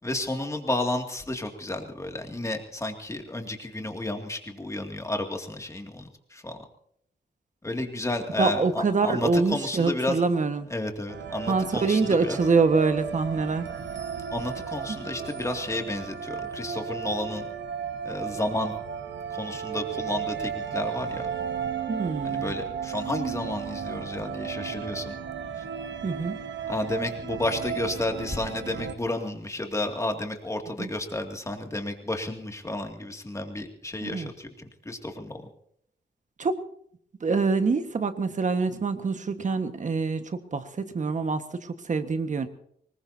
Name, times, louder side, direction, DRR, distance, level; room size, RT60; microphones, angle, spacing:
voice 1, 0.0-6.6 7.6-10.2 10.7-12.4 14.3-17.5 18.0-18.8 19.3-21.3 22.2-25.2 25.5-25.7 26.7-34.5 34.8-35.5, left 2 dB, 15° left, 4 dB, 2.4 m, -32 dB
voice 2, 8.4-10.7 11.5-13.7 21.9-22.5 26.0-26.4 30.8-30.9 34.0-34.3 36.4-36.6 37.2-42.5, right 4 dB, 45° right, 8 dB, 1.5 m, -25 dB
sound 1, 11.1-28.9, right 7 dB, 85° right, 1.4 m, -34 dB
24.0 x 21.0 x 2.8 m, 0.67 s
wide cardioid pair, 155°, 18 cm